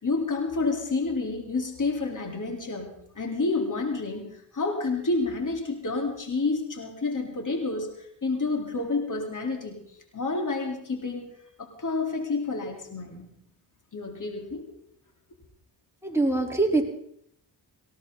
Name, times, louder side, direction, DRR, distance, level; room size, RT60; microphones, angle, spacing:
voice 1, 0.0-9.8 10.1-11.3 11.6-13.3 13.9-14.6, left 3 dB, 40° left, 2 dB, 4.0 m, -29 dB
voice 2, 16.0-16.8, right 2 dB, 5° right, 0 dB, 3.9 m, -23 dB
19.0 x 17.0 x 4.1 m, 0.71 s
cardioid pair, 60°, 45 cm